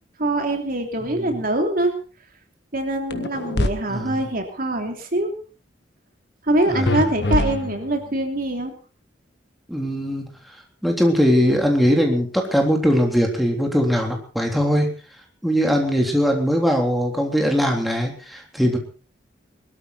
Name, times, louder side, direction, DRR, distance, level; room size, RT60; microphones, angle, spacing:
voice 1, 0.2-1.9 2.7-5.3 6.4-8.7, right 1 dB, 50° right, 4 dB, 3.0 m, -23 dB
voice 2, 1.0-1.4 3.9-4.1 6.7-6.9 9.7-10.3 10.8-14.9 15.4-18.8, equal, ahead, 1 dB, 3.4 m, -20 dB
sound 1, 3.1-3.7 6.9-8.0, left 1 dB, 65° left, 1.5 m, -23 dB
22.0 x 13.5 x 4.3 m, 0.37 s
head